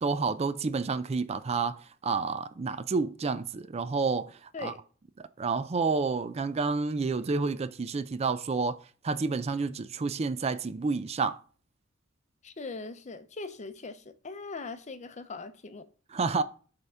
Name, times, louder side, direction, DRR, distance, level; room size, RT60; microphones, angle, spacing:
voice 1, 0.0-4.7 5.4-8.8 9.0-11.4 16.1-16.4, right 4 dB, 35° right, 0.4 m, -29 dB
voice 2, 12.4-15.9, left 3 dB, 35° left, 0.6 m, -40 dB
7.8 x 3.6 x 5.5 m
head